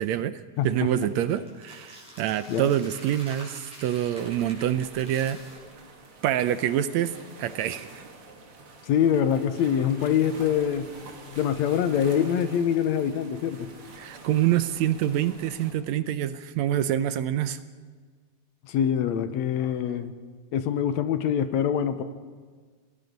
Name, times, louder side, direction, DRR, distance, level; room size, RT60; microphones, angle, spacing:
voice 1, 0.0-5.4 6.2-7.1 7.4-8.0 14.0-17.6, right 11 dB, 75° right, 13 dB, 1.8 m, -26 dB
voice 2, 0.6-0.9 2.5-2.7 8.9-10.9 11.3-13.7 18.7-20.1 20.5-22.0, left 9 dB, 70° left, 11 dB, 2.1 m, -24 dB
sound 1, 0.6-5.6, equal, ahead, 7.5 m, -47 dB
sound 2, 4.2-15.7, right 3 dB, 50° right, 2.7 m, -47 dB
27.5 x 19.0 x 5.3 m, 1.5 s
omnidirectional pair, 3.4 m